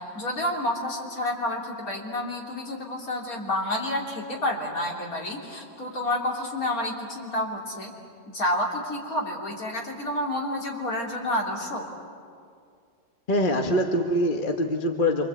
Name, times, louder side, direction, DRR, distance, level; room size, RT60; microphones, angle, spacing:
voice 1, 0.0-7.9 8.3-11.9, left 1 dB, 50° left, -1 dB, 3.8 m, -29 dB
voice 2, 13.3-15.3, left 1 dB, 30° left, 3 dB, 1.3 m, -24 dB
27.5 x 24.5 x 8.4 m, 2.3 s
omnidirectional pair, 1.9 m